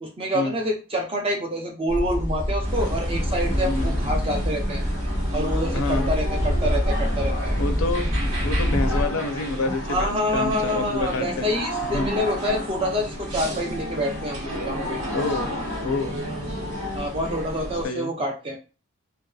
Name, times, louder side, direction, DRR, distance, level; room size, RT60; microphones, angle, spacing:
voice 1, 0.0-4.8 5.3-7.5 9.9-15.0 16.9-18.6, equal, 25° right, 1 dB, 0.5 m, -27 dB
sound 1, 1.9-9.0, equal, 10° right, 1.0 m, -25 dB
sound 2, 2.6-17.9, equal, 80° right, 1.2 m, -31 dB
voice 2, 3.6-4.0 5.7-6.1 7.6-8.1 8.4-11.5 11.9-12.1 15.1-15.5 15.8-16.2 17.8-18.1, left 3 dB, 65° left, 6 dB, 0.4 m, -28 dB
2.6 x 2.3 x 2.3 m, 0.33 s
head